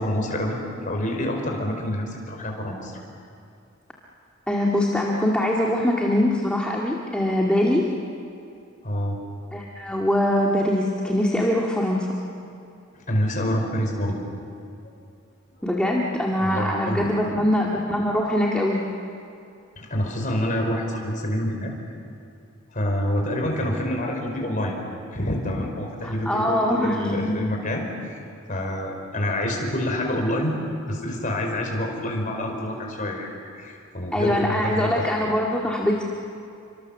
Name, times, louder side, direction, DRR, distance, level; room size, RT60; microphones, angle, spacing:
voice 1, 0.0-2.9 8.8-9.2 12.9-14.2 16.4-17.1 19.8-21.7 22.7-24.7 25.1-28.2 28.5-30.6 30.9-33.3 33.6-35.0, left 1 dB, 40° left, 1 dB, 5.1 m, -27 dB
voice 2, 4.5-7.8 9.5-12.1 15.6-18.8 26.0-27.4 34.1-36.0, left 1 dB, 5° left, -3 dB, 2.0 m, -23 dB
30.0 x 24.5 x 7.3 m, 2.6 s
head